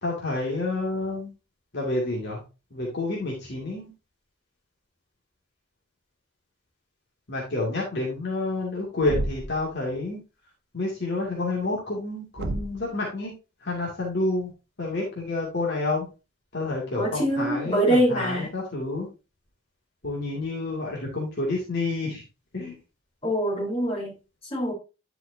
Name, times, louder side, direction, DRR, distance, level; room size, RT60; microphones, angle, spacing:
voice 1, 0.0-1.3 1.7-2.4 2.7-3.9 7.3-10.2 10.7-13.3 13.6-14.5 14.8-16.1 16.5-19.1 20.0-22.2 22.5-22.7, left 2 dB, 60° left, -3 dB, 2.4 m, -29 dB
Thump thud, 9.0-9.7 12.4-12.9, right 2 dB, 60° right, 0.8 m, -31 dB
voice 2, 16.9-18.5 23.2-24.1 24.5-24.7, right 1 dB, 30° left, -3 dB, 4.0 m, -24 dB
10.5 x 5.8 x 2.7 m, 0.29 s
head